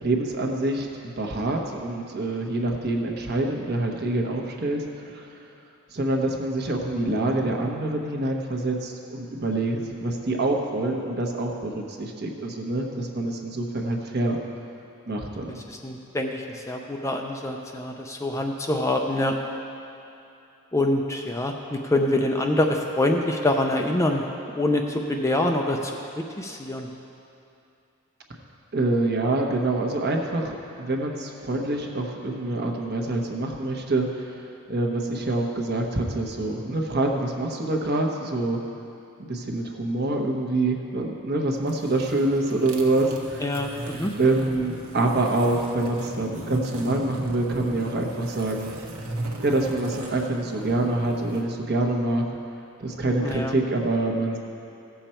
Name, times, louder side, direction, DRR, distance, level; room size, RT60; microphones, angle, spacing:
voice 1, 0.0-5.3 5.9-14.4 15.1-15.6 28.7-38.6 39.2-43.5 44.2-48.7 49.4-52.2 52.8-54.4, right 2 dB, 45° right, 1 dB, 1.1 m, -26 dB
voice 2, 15.7-19.3 20.7-24.2 24.5-25.9 26.2-26.9 43.4-44.1 53.2-53.5, left 1 dB, 15° left, 2 dB, 0.5 m, -25 dB
sound 1, 41.6-51.4, right 1 dB, 75° right, 1.2 m, -36 dB
16.0 x 6.9 x 4.4 m, 2.7 s
head